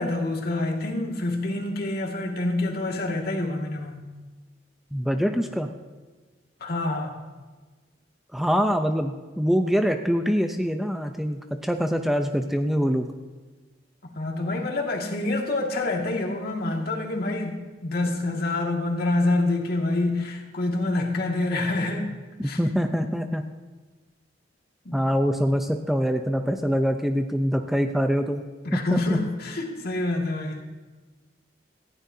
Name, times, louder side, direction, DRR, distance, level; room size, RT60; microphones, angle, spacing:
voice 1, 0.0-4.1 6.6-7.2 14.0-22.1 22.4-22.6 24.9-25.0 28.6-30.7, left 2 dB, 55° left, 1 dB, 2.1 m, -27 dB
voice 2, 4.9-5.7 8.3-13.1 22.6-23.5 24.9-28.4 28.7-29.2, equal, ahead, 5 dB, 0.6 m, -24 dB
18.5 x 15.5 x 2.8 m, 1.3 s
head